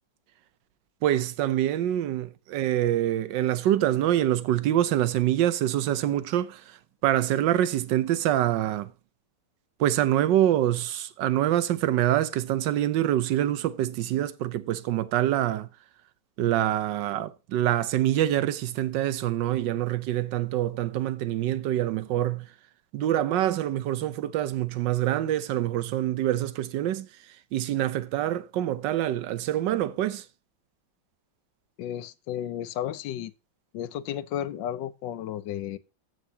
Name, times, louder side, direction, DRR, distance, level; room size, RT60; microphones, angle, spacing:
voice 1, 1.0-8.9 9.8-15.7 16.4-22.5 22.9-27.1 27.5-30.3, right 12 dB, 75° right, 1.4 m, -25 dB
voice 2, 31.8-33.3 33.7-35.8, left 11 dB, 75° left, 1.3 m, -33 dB
14.5 x 6.0 x 2.8 m
omnidirectional pair, 2.0 m